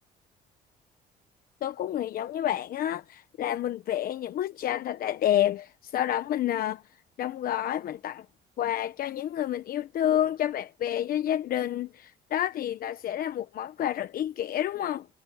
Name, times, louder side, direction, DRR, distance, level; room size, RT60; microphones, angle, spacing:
voice 1, 1.6-6.8 7.2-8.3 8.6-15.1, left 11 dB, 60° left, 1.1 m, -29 dB
cardioid pair, 110°, 17 cm